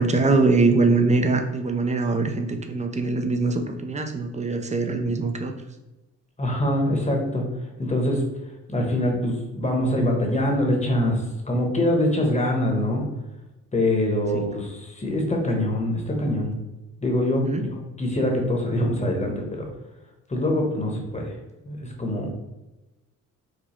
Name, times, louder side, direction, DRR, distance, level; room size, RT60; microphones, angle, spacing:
voice 1, 0.0-5.5 17.5-17.6, right 3 dB, 25° right, 5 dB, 0.5 m, -22 dB
voice 2, 6.4-7.5 7.8-8.2 8.7-13.1 13.7-16.5 17.0-19.7 20.3-21.3 21.6-22.3, left 1 dB, 20° left, 1 dB, 1.1 m, -24 dB
4.9 x 2.2 x 4.3 m, 1.0 s
cardioid pair, 90°, 31 cm